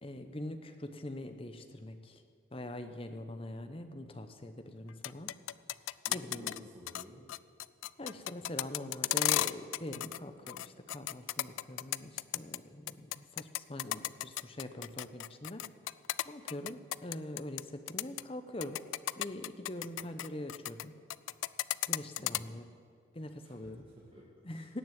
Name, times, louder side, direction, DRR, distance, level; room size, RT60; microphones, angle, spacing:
voice 1, 0.0-2.2 2.5-5.3 5.8-6.5 8.0-15.6 16.2-18.8 19.2-20.9 21.9-22.7 23.1-23.8 24.4-24.8, left 1 dB, 30° left, 8 dB, 0.8 m, -43 dB
sound 1, 4.9-6.6 6.9-7.0 7.3-10.2 10.5-12.6 12.9-17.6 17.9-18.2 18.6-20.8 21.1-22.4, left 15 dB, 90° left, 0.3 m, -34 dB
voice 2, 6.1-7.2 22.2-22.5 23.4-23.5 24.0-24.7, equal, 25° right, -4 dB, 1.6 m, -53 dB
17.5 x 6.3 x 9.3 m, 2.2 s
head